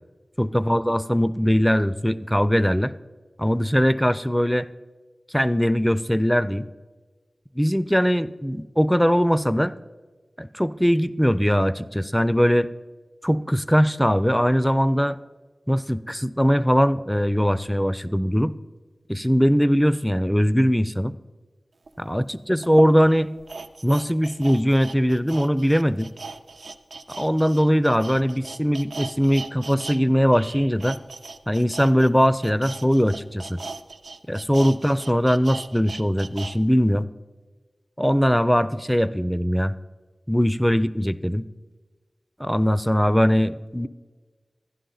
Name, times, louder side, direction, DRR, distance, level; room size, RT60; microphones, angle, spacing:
voice 1, 0.4-2.9 3.4-4.7 5.3-6.6 7.6-9.7 10.4-12.7 13.2-15.2 15.7-18.5 19.1-21.1 22.0-23.3 23.8-26.1 27.2-31.0 31.5-33.6 34.3-37.1 38.0-39.7 40.3-41.4 42.4-43.9, equal, 5° left, 15 dB, 0.3 m, -21 dB
sound 1, 21.9-22.0 22.6-30.0 30.3-36.6 36.9-37.0, right 3 dB, 90° right, 0.4 m, -38 dB
11.5 x 11.0 x 3.9 m, 1.3 s
wide cardioid pair, 55°, 0 cm